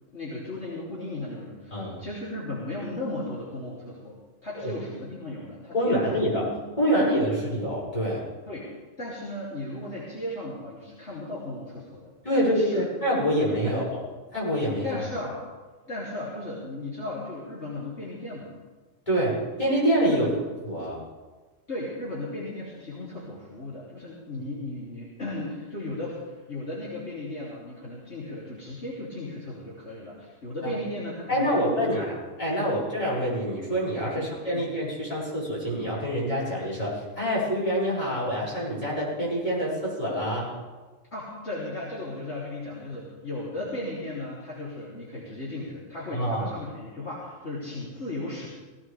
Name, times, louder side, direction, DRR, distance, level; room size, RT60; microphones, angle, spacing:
voice 1, 0.1-6.0 6.4-6.5 6.9-7.4 8.5-8.7 9.0-12.9 13.6-13.7 14.8-15.4 15.9-18.5 20.1-20.3 21.7-32.1 32.5-32.7 34.1-34.7 41.1-48.5, left 1 dB, 55° left, -8 dB, 3.6 m, -36 dB
voice 2, 1.7-2.0 4.6-4.7 5.7-6.4 6.8-8.2 12.2-14.0 14.3-15.0 19.1-20.3 20.6-21.0 30.6-30.7 31.3-32.1 32.4-40.5 46.1-46.5, equal, 25° left, -8 dB, 6.9 m, -26 dB
19.5 x 17.0 x 3.6 m, 1.3 s
omnidirectional pair, 1.3 m